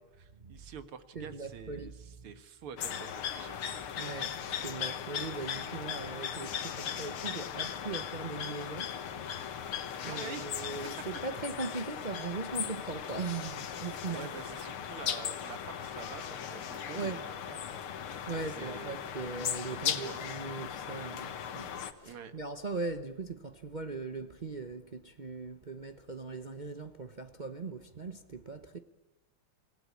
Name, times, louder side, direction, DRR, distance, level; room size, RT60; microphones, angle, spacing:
voice 1, 0.0-3.8 10.1-10.6 14.1-19.0 19.7-20.3 22.0-22.4, right 7 dB, 85° right, 2.4 m, -47 dB
voice 2, 1.1-1.9 4.0-8.9 10.0-14.3 16.9-17.2 18.3-28.8, right 3 dB, 55° right, 0.5 m, -39 dB
sound 1, 2.8-21.9, left 8 dB, 80° left, 2.2 m, -38 dB
27.5 x 17.5 x 8.4 m
omnidirectional pair, 2.3 m